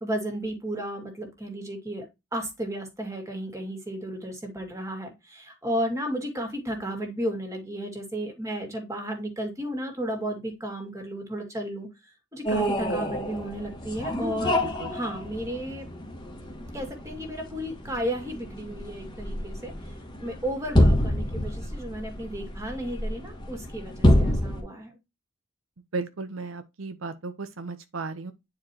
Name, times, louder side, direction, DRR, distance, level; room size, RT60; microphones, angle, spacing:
voice 1, 0.0-2.1 2.3-15.9 16.7-19.7 20.2-24.9, equal, 15° right, 2.2 m, -33 dB
sound 1, 12.5-24.6, left 1 dB, 20° left, 1.6 m, -27 dB
voice 2, 25.9-28.3, right 3 dB, 75° right, 0.7 m, -35 dB
9.7 x 4.7 x 2.9 m
head